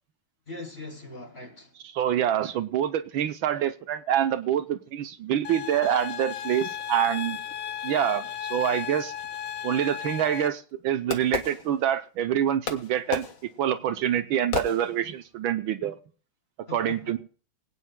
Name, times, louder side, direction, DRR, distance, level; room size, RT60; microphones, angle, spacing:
voice 1, 0.5-1.7 16.7-17.2, left 3 dB, 30° left, 3.5 m, -41 dB
voice 2, 1.8-7.4 7.8-9.1 9.6-13.3 13.6-16.0 16.7-17.2, right 10 dB, 75° right, 1.6 m, -26 dB
sound 1, 5.4-10.5, left 10 dB, 85° left, 1.7 m, -35 dB
Fireworks, 10.0-12.2 12.7-15.4, left 5 dB, 45° left, 1.5 m, -35 dB
23.5 x 9.5 x 2.2 m
omnidirectional pair, 2.2 m